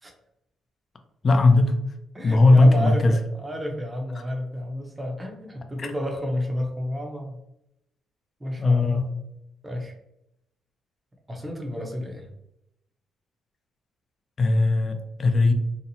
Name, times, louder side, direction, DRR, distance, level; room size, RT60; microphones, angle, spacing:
voice 1, 1.2-1.7 2.2-3.1 5.8-5.9 8.6-9.1 14.4-15.5, left 2 dB, 40° left, 5 dB, 0.4 m, -18 dB
voice 2, 2.1-7.4 8.4-9.1 9.6-9.9 11.3-12.3, equal, 20° right, 2 dB, 0.6 m, -31 dB
2.8 x 2.0 x 2.6 m, 0.82 s
cardioid pair, 90°, 0 cm